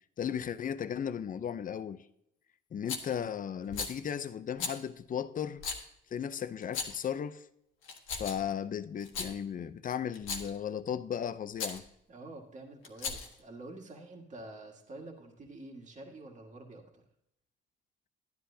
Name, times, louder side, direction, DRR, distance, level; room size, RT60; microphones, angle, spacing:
voice 1, 0.2-2.0 2.7-5.6 6.1-7.5 8.1-11.8, left 8 dB, 45° left, 0.6 m, -36 dB
Rattle, 2.9-3.2 3.7-4.0 4.6-4.8 5.6-5.8 6.6-7.1 7.8-8.5 9.0-9.3 10.1-10.6 11.6-11.8 12.8-13.4, left 5 dB, 85° left, 1.4 m, -37 dB
voice 2, 12.1-17.0, right 2 dB, 40° right, 1.7 m, -48 dB
12.0 x 10.0 x 2.7 m
cardioid pair, 90°, 20 cm